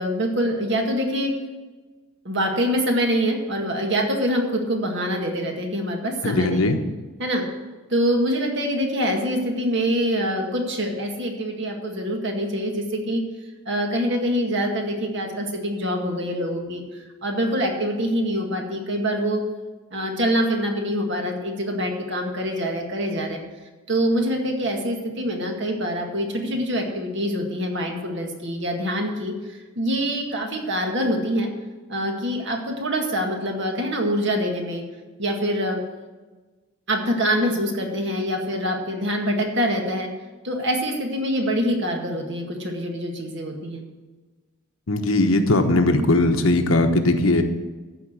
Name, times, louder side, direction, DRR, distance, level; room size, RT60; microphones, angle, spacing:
voice 1, 0.0-1.3 2.3-6.8 7.2-7.4 7.9-13.2 13.7-16.8 17.2-19.4 19.9-23.4 23.9-29.3 29.8-31.5 31.9-34.8 35.2-35.8 36.9-40.1 40.4-43.8, equal, 60° right, 2 dB, 2.0 m, -25 dB
voice 2, 6.2-6.8 44.9-47.4, left 2 dB, 90° left, 6 dB, 1.1 m, -19 dB
13.5 x 4.9 x 8.2 m, 1.3 s
head